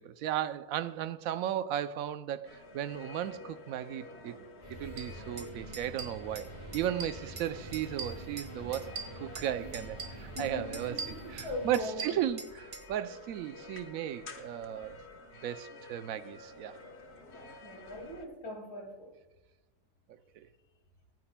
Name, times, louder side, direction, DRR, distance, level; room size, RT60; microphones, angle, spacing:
voice 1, 0.0-4.4 4.7-15.0 15.4-16.8 20.4-20.5, right 10 dB, 70° right, 0.8 m, -35 dB
sound 1, 2.4-18.3, left 2 dB, 45° left, 1.2 m, -50 dB
sound 2, 4.6-11.8, right 1 dB, 20° right, 4.2 m, -46 dB
sound 3, 5.0-5.1 5.4-5.5 5.7-6.5 6.7-7.5 7.7-9.5 9.7-10.5 10.7-12.8, right 5 dB, 85° right, 2.4 m, -41 dB
voice 2, 10.3-12.2 17.6-19.1, left 2 dB, 65° left, 3.1 m, -41 dB
22.5 x 9.9 x 2.2 m
omnidirectional pair, 1.9 m